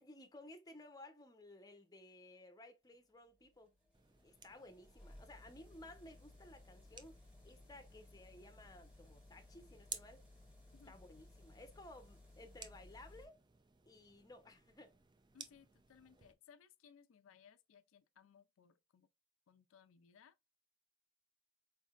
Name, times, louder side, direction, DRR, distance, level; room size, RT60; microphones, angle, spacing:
voice 1, 0.0-3.7 4.2-10.2 10.9-13.4 13.9-14.9, left 1 dB, 20° left, 0.7 m, -57 dB
sound 1, 2.9-13.3, left 2 dB, 5° right, 1.6 m, -61 dB
sound 2, 3.9-16.3, right 6 dB, 25° right, 0.4 m, -57 dB
voice 2, 15.3-19.1 19.5-20.4, left 7 dB, 85° left, 0.4 m, -64 dB
4.5 x 3.2 x 2.4 m
head